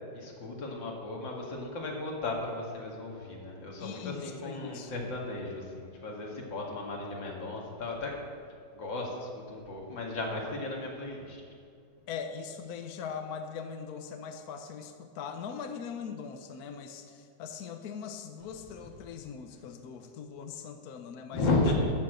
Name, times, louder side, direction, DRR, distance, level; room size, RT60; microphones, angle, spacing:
voice 1, 0.1-8.2 8.7-11.4 21.3-21.9, left 2 dB, 85° left, -1 dB, 2.7 m, -34 dB
voice 2, 3.8-4.9 12.1-21.6, left 6 dB, 60° left, 6 dB, 1.2 m, -41 dB
12.5 x 6.8 x 7.8 m, 2.4 s
omnidirectional pair, 2.0 m